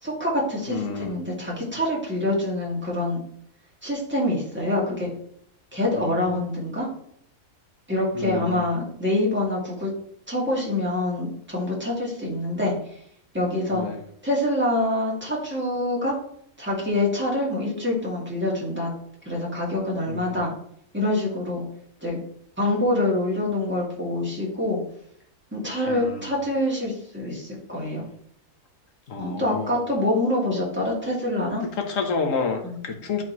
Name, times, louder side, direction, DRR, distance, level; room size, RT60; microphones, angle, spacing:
voice 1, 0.0-3.2 3.8-5.1 5.7-6.9 7.9-9.9 10.3-12.7 13.3-13.8 14.2-16.2 16.6-18.9 19.2-20.5 20.9-21.6 22.0-22.2 22.6-24.8 25.5-28.0 29.2-31.6 32.6-32.9, left 1 dB, 10° right, -5 dB, 2.3 m, -25 dB
voice 2, 0.7-1.1 6.0-6.2 8.1-8.6 13.7-14.0 20.1-20.2 25.9-26.3 29.1-29.7 31.8-33.2, left 5 dB, 70° left, 3 dB, 1.5 m, -29 dB
10.5 x 3.9 x 3.1 m, 0.68 s
omnidirectional pair, 1.5 m